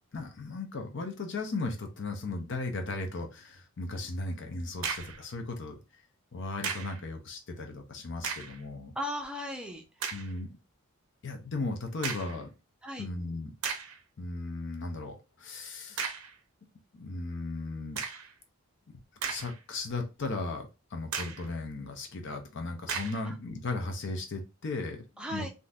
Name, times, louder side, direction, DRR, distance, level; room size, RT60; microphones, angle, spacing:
voice 1, 0.1-6.0 6.3-8.9 10.1-10.6 11.2-12.5 13.0-13.5 14.2-16.0 16.9-18.0 19.2-25.5, left 3 dB, 55° left, 5 dB, 0.5 m, -36 dB
sound 1, 4.8-5.2 6.6-7.0 8.1-8.6 9.2-9.3 10.0-10.3 12.0-12.4 13.1-13.2 13.6-14.0 16.0-16.4 17.9-18.3 19.0-19.8 20.2-20.3 21.1-21.5 22.9-23.3, right 6 dB, 75° right, 0.6 m, -36 dB
voice 2, 9.0-10.2 12.8-13.1 23.3-23.4 25.2-25.5, equal, 5° right, 3 dB, 0.5 m, -37 dB
3.6 x 2.6 x 2.3 m, 0.28 s
head